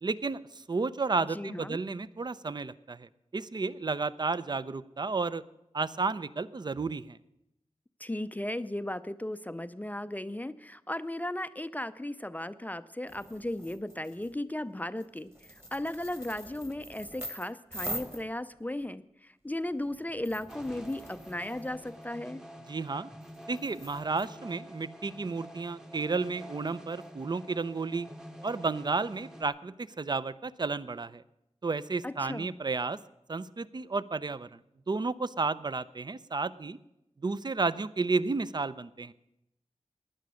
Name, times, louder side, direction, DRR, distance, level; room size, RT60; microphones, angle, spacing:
voice 1, 0.0-5.4 5.7-7.2 22.7-23.1 23.5-28.1 28.4-31.2 31.6-33.0 33.3-34.6 34.9-36.8 37.2-39.1, right 4 dB, 40° right, 16 dB, 0.5 m, -32 dB
voice 2, 1.3-1.8 8.0-22.4 32.0-32.5, left 1 dB, 15° left, 13 dB, 0.5 m, -36 dB
sound 1, 13.1-14.3 15.0-18.9 19.5-22.0 23.2-24.3, equal, 20° right, 1.5 m, -44 dB
sound 2, 20.5-29.4, equal, 5° right, 0.9 m, -48 dB
16.5 x 10.5 x 6.3 m, 0.85 s
wide cardioid pair, 70°, 12 cm